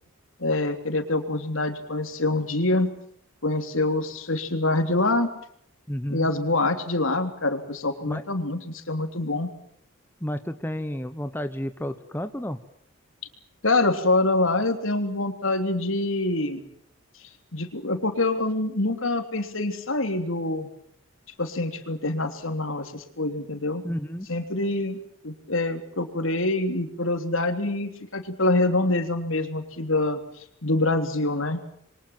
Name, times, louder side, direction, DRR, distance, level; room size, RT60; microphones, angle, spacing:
voice 1, 0.4-2.9 3.4-5.3 6.1-9.5 13.6-16.6 17.5-20.7 21.4-23.8 24.3-30.2 30.6-31.6, left 2 dB, 70° left, 7 dB, 3.4 m, -25 dB
voice 2, 5.9-6.3 8.0-8.2 10.2-12.6 23.8-24.3, equal, 10° left, 9 dB, 1.0 m, -31 dB
28.0 x 23.5 x 7.4 m, 0.66 s
head